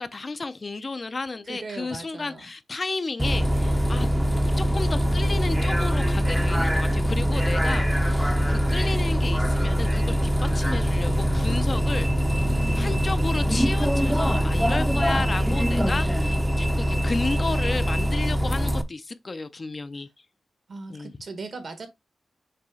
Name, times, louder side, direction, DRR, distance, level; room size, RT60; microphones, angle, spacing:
voice 1, 0.0-4.1 4.6-12.1 12.8-20.1 20.9-21.1, left 3 dB, 35° left, 0.6 m, -32 dB
voice 2, 1.4-2.5 12.4-13.3 20.7-21.9, right 3 dB, 60° right, 1.7 m, -38 dB
Bus, 3.2-18.8, equal, ahead, 0.7 m, -23 dB
6.7 x 2.9 x 4.9 m
wide cardioid pair, 120°, 0 cm